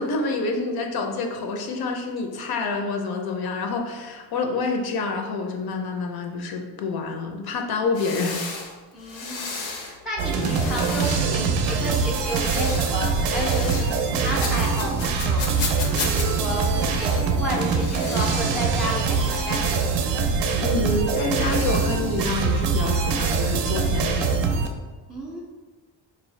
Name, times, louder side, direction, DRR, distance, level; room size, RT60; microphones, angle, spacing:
voice 1, 0.0-8.5 20.6-24.3, left 3 dB, 55° left, 4 dB, 0.5 m, -27 dB
sound 1, 7.9-10.0 10.3-11.4 11.9-14.1 14.4-16.3 16.6-17.3 17.7-19.4, left 4 dB, 90° left, 0.8 m, -35 dB
voice 2, 8.9-15.7 16.0-20.4 25.1-25.4, equal, ahead, -2 dB, 0.3 m, -31 dB
sound 2, 10.2-24.7, right 5 dB, 65° right, 0.5 m, -23 dB
4.0 x 2.7 x 3.1 m, 1.3 s
cardioid pair, 155°, 45 cm